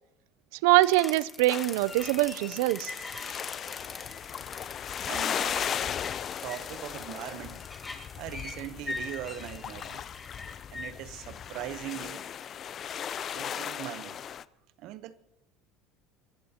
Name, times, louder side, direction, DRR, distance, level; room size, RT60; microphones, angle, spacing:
voice 1, 0.6-2.9, right 18 dB, 80° right, 0.4 m, -23 dB
sound 1, 0.8-10.9, left 3 dB, 15° left, 1.6 m, -42 dB
sound 2, 1.5-14.4, left 9 dB, 40° left, 0.4 m, -37 dB
voice 2, 5.1-5.7 6.4-7.7 8.2-10.0 10.7-12.3 13.3-14.2 14.8-15.2, right 13 dB, 60° right, 0.8 m, -40 dB
26.0 x 14.0 x 2.8 m
supercardioid pair, 120°, 0 cm